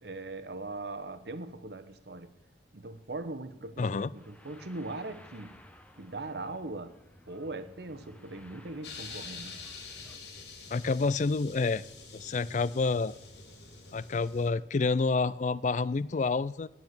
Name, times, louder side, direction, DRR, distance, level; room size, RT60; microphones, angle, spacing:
voice 1, 0.0-2.3 2.7-5.6 6.0-6.9 7.3-9.6, right 2 dB, 65° right, 11 dB, 1.0 m, -40 dB
voice 2, 3.8-4.1 10.7-11.8 12.1-13.1 13.9-16.7, left 4 dB, 40° left, 19 dB, 0.4 m, -28 dB
sound 1, 4.1-10.2, left 1 dB, 10° left, 0.9 m, -55 dB
sound 2, 8.8-14.5, left 4 dB, 75° left, 2.7 m, -46 dB
9.6 x 9.2 x 9.4 m, 0.85 s
head